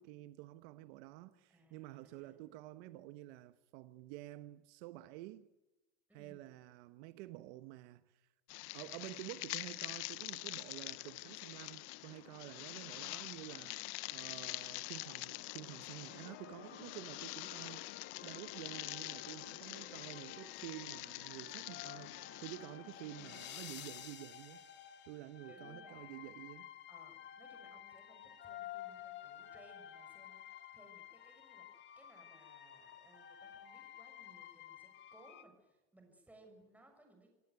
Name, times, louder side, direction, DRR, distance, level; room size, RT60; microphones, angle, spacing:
voice 1, 0.0-5.4 6.1-8.3 8.7-13.8 14.1-22.1 22.4-24.6 25.1-26.7, right 16 dB, 65° right, 1.2 m, -50 dB
voice 2, 1.5-2.4 6.1-6.5 19.6-20.1 23.2-23.5 25.4-26.3 26.9-37.3, right 1 dB, 5° right, 6.5 m, -64 dB
sound 1, 8.5-24.1, left 22 dB, 60° left, 0.9 m, -46 dB
sound 2, 16.1-35.4, left 10 dB, 30° left, 2.0 m, -53 dB
26.5 x 17.0 x 9.3 m
supercardioid pair, 155°, 37 cm